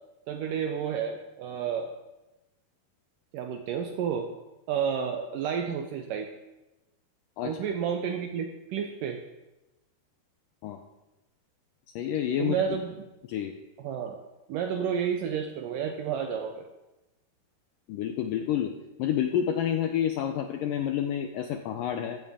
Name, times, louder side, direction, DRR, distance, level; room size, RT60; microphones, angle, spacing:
voice 1, 0.3-1.9 3.3-4.3 4.7-6.3 7.4-9.2 12.4-13.1 13.8-14.2 14.5-16.6, right 7 dB, 75° right, 5 dB, 2.0 m, -31 dB
voice 2, 12.0-12.6 13.3-13.5 17.9-18.7 19.0-22.2, left 9 dB, 85° left, 5 dB, 1.9 m, -29 dB
15.5 x 13.0 x 3.7 m, 1.0 s
omnidirectional pair, 4.7 m